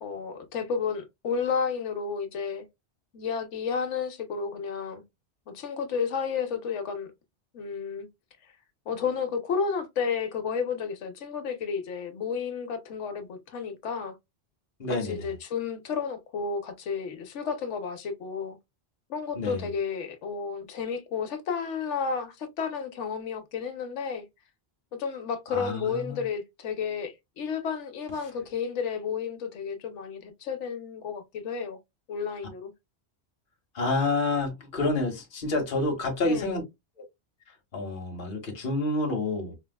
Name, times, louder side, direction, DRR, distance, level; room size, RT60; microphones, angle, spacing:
voice 1, 0.0-2.7 3.1-5.0 5.5-7.1 7.5-8.1 8.9-14.1 15.0-18.6 19.1-24.3 24.9-31.8 32.1-32.7 36.3-36.6, left 6 dB, 85° left, 1.1 m, -32 dB
voice 2, 14.8-15.3 19.3-19.7 25.5-26.2 33.7-36.6 37.7-39.5, left 2 dB, 50° left, 1.2 m, -28 dB
4.3 x 2.3 x 2.2 m
omnidirectional pair, 1.2 m